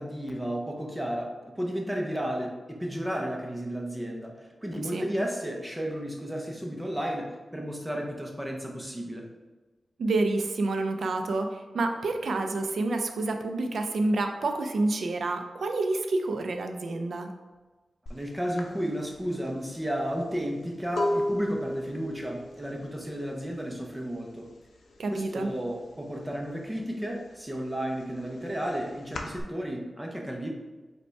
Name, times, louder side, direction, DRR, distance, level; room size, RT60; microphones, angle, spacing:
voice 1, 0.0-9.3 18.1-24.5 25.1-30.5, equal, 10° right, 1 dB, 0.6 m, -33 dB
voice 2, 10.0-17.3 25.0-25.5, right 2 dB, 70° right, 5 dB, 0.4 m, -28 dB
sound 1, 18.1-18.2 18.6-24.3 24.5-25.0 25.3-26.4 26.8-29.4, left 1 dB, 85° left, 0.6 m, -34 dB
5.1 x 2.2 x 4.5 m, 1.2 s
wide cardioid pair, 180°, 0 cm